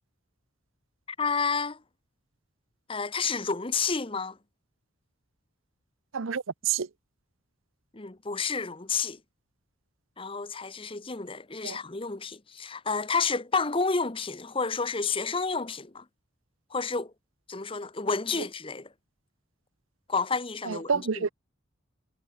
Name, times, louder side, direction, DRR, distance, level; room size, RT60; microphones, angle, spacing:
voice 1, 1.1-1.8 2.9-4.4 7.9-9.2 10.2-16.0 16.7-17.1 17.5-18.9 20.1-21.3, left 4 dB, 25° left, 0.9 m, -30 dB
voice 2, 6.1-6.9 11.6-11.8 20.6-21.3, right 6 dB, 75° right, 0.7 m, -28 dB
head